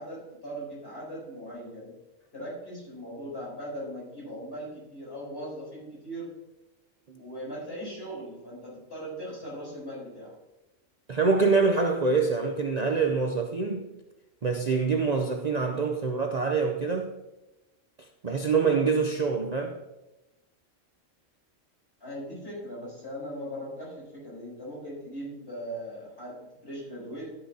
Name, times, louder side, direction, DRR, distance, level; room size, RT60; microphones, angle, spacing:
voice 1, 0.0-2.0 2.3-6.3 7.2-10.4 22.0-27.3, equal, 50° left, 4.5 m, -39 dB
voice 2, 11.1-13.9 14.4-17.1 18.0-19.8, right 4 dB, 40° right, 0.6 m, -25 dB
12.5 x 9.6 x 2.8 m
omnidirectional pair, 1.3 m